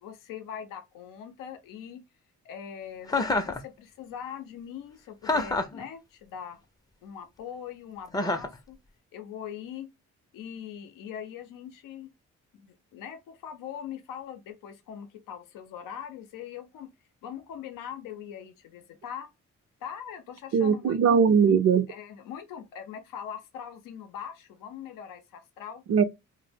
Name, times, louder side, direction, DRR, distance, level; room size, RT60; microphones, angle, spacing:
voice 1, 0.0-2.0 2.4-6.6 7.0-8.8 9.1-9.9 10.3-12.1 12.5-16.9 17.2-19.3 19.8-21.2 21.9-25.8, left 8 dB, 85° left, 0.6 m, -41 dB
Chuckle chortle, 3.1-3.6 5.2-5.8 8.1-8.6, left 2 dB, 10° left, 0.5 m, -27 dB
voice 2, 20.5-21.9 25.9-26.0, right 6 dB, 50° right, 0.5 m, -20 dB
2.1 x 2.1 x 3.3 m
cardioid pair, 65°, 32 cm